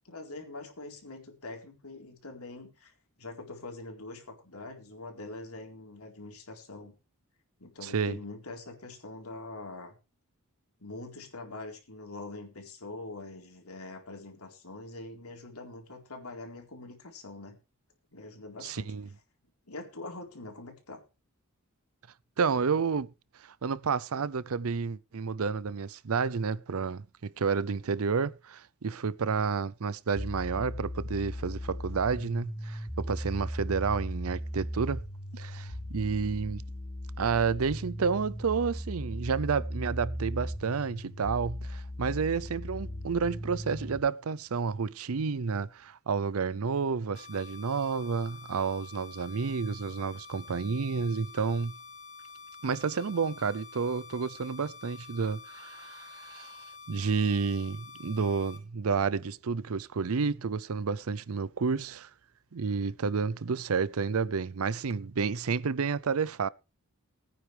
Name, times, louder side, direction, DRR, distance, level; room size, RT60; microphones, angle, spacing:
voice 1, 0.0-2.9 3.2-6.9 7.6-9.9 10.8-17.6 18.1-18.9 19.7-21.0, left 2 dB, 80° left, 4.0 m, -44 dB
voice 2, 7.8-8.2 18.6-19.1 22.4-23.1 23.4-35.0 35.3-36.6 37.2-51.7 52.6-56.6 56.9-62.1 62.5-66.5, right 5 dB, 75° right, 0.6 m, -30 dB
sound 1, 30.1-44.0, equal, 15° left, 5.8 m, -37 dB
sound 2, 47.1-58.6, left 5 dB, 35° left, 7.5 m, -48 dB
20.0 x 9.6 x 3.4 m
head